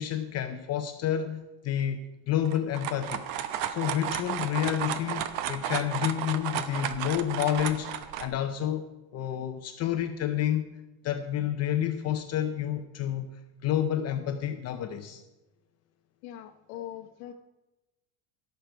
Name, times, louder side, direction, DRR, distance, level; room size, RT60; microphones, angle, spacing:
voice 1, 0.0-2.0 2.3-3.2 3.7-7.9 8.2-10.7 11.0-13.3 13.6-15.2, left 10 dB, 35° left, 7 dB, 0.6 m, -29 dB
sound 1, 2.5-8.3, right 10 dB, 70° right, 1.0 m, -33 dB
voice 2, 16.2-17.3, left 12 dB, 75° left, 2 dB, 1.0 m, -41 dB
16.0 x 6.7 x 4.5 m, 1.0 s
cardioid pair, 145°, 43 cm